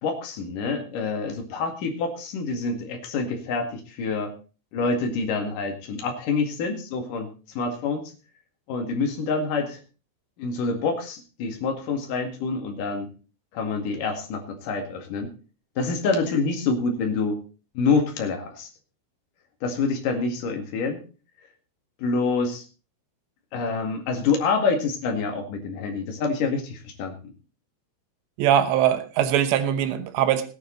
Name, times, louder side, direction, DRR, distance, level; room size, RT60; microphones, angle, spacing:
voice 1, 0.0-4.3 4.7-8.1 8.7-9.8 10.4-13.1 13.5-15.3 15.8-17.4 17.7-18.7 19.6-21.0 22.0-22.6 23.5-27.3, left 4 dB, 55° left, 3 dB, 3.4 m, -27 dB
voice 2, 28.4-30.4, right 10 dB, 85° right, 10 dB, 3.3 m, -21 dB
18.0 x 9.3 x 3.9 m, 0.34 s
omnidirectional pair, 4.9 m